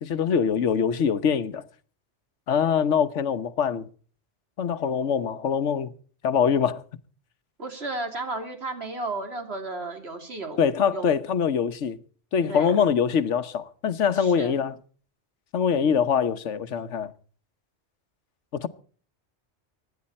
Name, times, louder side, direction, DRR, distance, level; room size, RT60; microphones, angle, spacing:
voice 1, 0.0-1.6 2.5-3.9 4.6-5.9 6.2-6.8 10.6-12.0 12.3-14.8 15.5-17.1 18.5-18.7, left 7 dB, 85° left, 1.3 m, -23 dB
voice 2, 7.6-10.6 10.9-11.1 12.5-12.7 14.2-14.6, right 2 dB, 60° right, 3.3 m, -33 dB
24.5 x 10.5 x 4.2 m
omnidirectional pair, 1.2 m